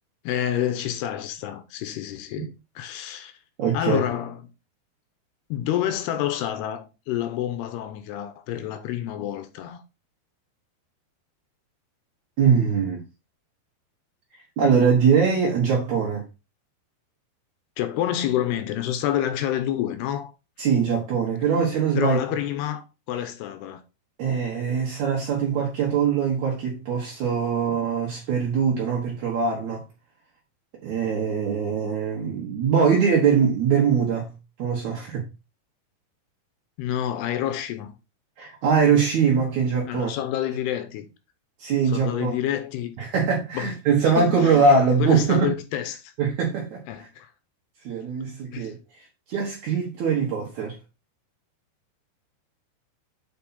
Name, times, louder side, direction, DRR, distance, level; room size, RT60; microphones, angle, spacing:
voice 1, 0.3-2.5 2.8-3.3 3.7-4.4 5.5-9.8 17.8-20.3 22.0-23.8 36.8-38.0 39.9-41.1 41.9-43.0 43.5-43.7 44.2-44.6 45.0-46.1 46.9-47.3 48.5-48.7, left 11 dB, 80° left, 2.6 m, -28 dB
voice 2, 3.6-4.0 12.4-13.0 14.3-16.2 20.6-22.2 24.2-29.8 30.8-34.3 34.6-35.2 38.4-40.1 41.6-42.3 43.0-45.5 46.2-47.1 47.8-50.8, right 6 dB, 60° right, 2.1 m, -22 dB
7.0 x 5.4 x 4.1 m
omnidirectional pair, 5.0 m